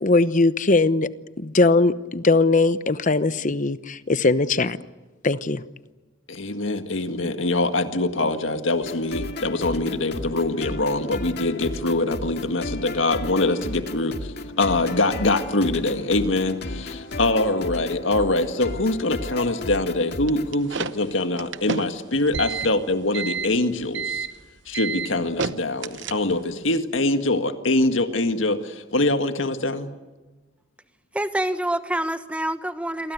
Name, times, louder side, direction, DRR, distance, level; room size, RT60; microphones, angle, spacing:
voice 1, 0.0-1.1 1.4-4.8 5.2-5.6, left 3 dB, 40° left, 14 dB, 0.9 m, -20 dB
voice 2, 6.3-24.3 24.7-29.9, left 2 dB, 80° left, 7 dB, 1.9 m, -24 dB
sound 1, 8.8-20.5, left 2 dB, 60° left, 2.1 m, -34 dB
sound 2, 20.3-26.5, right 5 dB, 65° right, 0.9 m, -31 dB
voice 3, 31.1-33.1, right 1 dB, 5° right, 10 dB, 1.1 m, -26 dB
28.5 x 23.0 x 8.1 m, 1.2 s
head